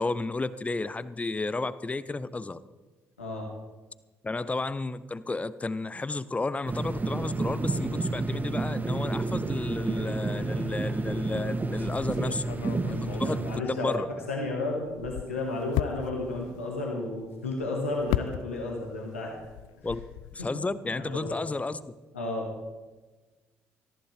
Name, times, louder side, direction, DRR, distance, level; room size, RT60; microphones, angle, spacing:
voice 1, 0.0-2.6 4.2-12.5 12.9-14.1 19.8-20.0 20.3-21.9, left 3 dB, 20° left, 16 dB, 0.8 m, -32 dB
voice 2, 3.2-3.5 12.8-14.0 14.3-19.3 20.4-20.5 21.0-21.3 22.1-22.5, left 2 dB, 85° left, -2 dB, 1.9 m, -32 dB
sound 1, 6.7-13.6, right 3 dB, 25° right, 1.1 m, -30 dB
sound 2, 11.8-14.5 14.8-18.9 19.2-20.5, left 16 dB, 65° left, 0.4 m, -36 dB
19.0 x 14.5 x 3.5 m, 1.3 s
figure-of-eight pair, 50°, 7 cm